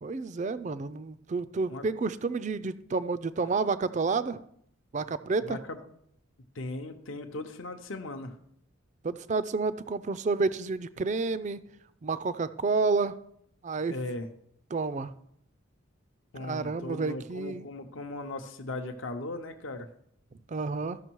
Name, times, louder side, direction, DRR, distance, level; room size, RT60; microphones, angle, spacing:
voice 1, 0.0-4.4 4.9-5.6 9.0-11.6 12.0-13.1 13.6-13.9 14.7-15.1 16.4-17.7 20.5-21.0, right 4 dB, 35° right, 14 dB, 0.4 m, -30 dB
voice 2, 5.4-5.8 6.5-8.4 13.9-14.3 16.3-19.9, left 2 dB, 65° left, 5 dB, 0.7 m, -38 dB
13.5 x 6.0 x 4.6 m, 0.72 s
head